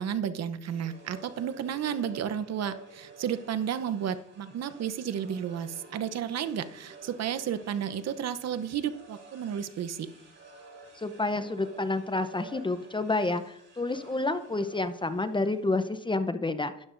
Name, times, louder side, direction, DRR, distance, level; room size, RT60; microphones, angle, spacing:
voice 1, 0.0-10.1, right 8 dB, 60° right, 13 dB, 0.8 m, -32 dB
sound 1, 0.6-16.3, right 3 dB, 40° right, 3.7 m, -51 dB
voice 2, 11.0-16.7, left 2 dB, 15° left, 11 dB, 0.7 m, -29 dB
12.5 x 10.0 x 2.6 m, 0.77 s
cardioid pair, 90°, 30 cm